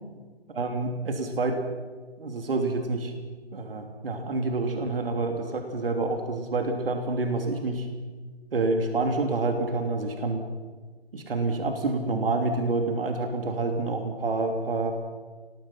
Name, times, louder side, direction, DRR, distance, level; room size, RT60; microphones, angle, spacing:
voice 1, 0.5-1.6 2.2-3.1 3.5-7.9 8.5-10.4 11.1-14.9, right 3 dB, 60° right, 4 dB, 3.1 m, -28 dB
26.5 x 19.5 x 5.8 m, 1.4 s
figure-of-eight pair, 145°, 31 cm